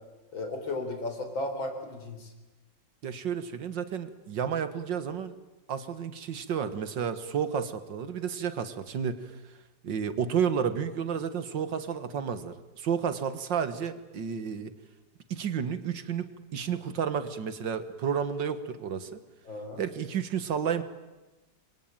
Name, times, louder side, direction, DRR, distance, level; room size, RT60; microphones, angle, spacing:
voice 1, 0.3-2.3 19.5-19.8, left 2 dB, 90° left, 6 dB, 4.7 m, -35 dB
voice 2, 3.0-5.3 5.7-9.3 9.8-14.7 15.3-19.2 19.8-20.8, right 7 dB, 75° right, 11 dB, 2.1 m, -31 dB
27.5 x 23.0 x 9.1 m, 1.1 s
omnidirectional pair, 2.1 m